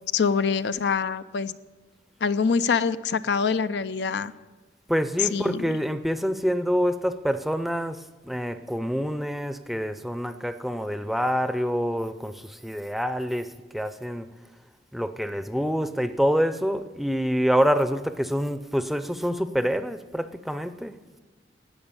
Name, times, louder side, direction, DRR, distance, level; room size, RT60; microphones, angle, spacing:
voice 1, 0.1-1.5 2.2-4.3 5.3-5.7, left 5 dB, 85° left, 0.5 m, -25 dB
voice 2, 4.9-14.3 14.9-21.0, equal, ahead, 0.5 m, -26 dB
12.0 x 9.0 x 8.9 m
head